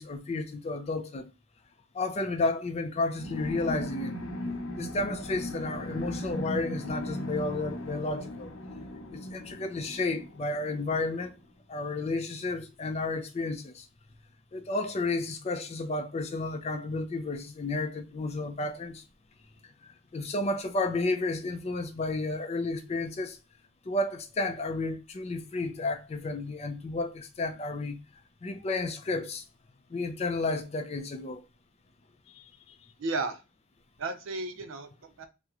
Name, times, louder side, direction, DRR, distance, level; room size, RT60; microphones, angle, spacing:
voice 1, 0.0-1.3 1.9-4.2 4.7-8.5 9.1-11.3 11.7-13.9 14.5-19.0 19.6-23.4 23.9-28.0 28.4-29.4 29.9-31.4 32.3-32.7, left 2 dB, 30° left, 0.3 m, -32 dB
sound 1, 3.1-11.3, left 1 dB, 75° left, 0.7 m, -38 dB
voice 2, 33.0-33.4 34.0-35.3, right 3 dB, 75° right, 0.5 m, -34 dB
2.8 x 2.1 x 3.5 m
head